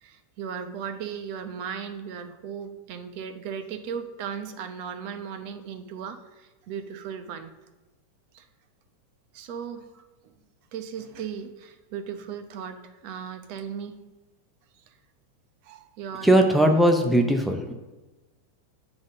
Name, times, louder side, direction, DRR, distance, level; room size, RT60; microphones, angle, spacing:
voice 1, 0.0-7.5 8.3-8.4 9.3-10.3 10.7-14.0 14.9-15.0 15.6-16.3, right 7 dB, 45° right, 8 dB, 0.7 m, -37 dB
voice 2, 16.2-17.7, right 1 dB, ahead, 2 dB, 0.5 m, -19 dB
8.6 x 4.1 x 5.3 m, 1.1 s
supercardioid pair, 165°, 0 cm